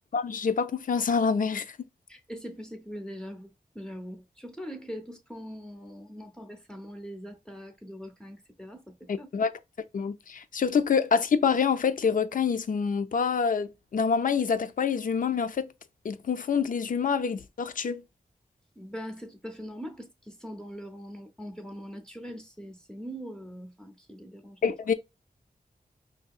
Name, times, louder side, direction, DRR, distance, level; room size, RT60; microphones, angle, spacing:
voice 1, 0.1-1.8 9.1-9.5 9.9-15.7 16.0-18.0 24.6-24.9, left 6 dB, 55° left, 0.4 m, -26 dB
voice 2, 2.1-9.3 18.8-24.7, equal, 5° left, 0.6 m, -42 dB
5.0 x 2.7 x 2.3 m
wide cardioid pair, 100°, 16 cm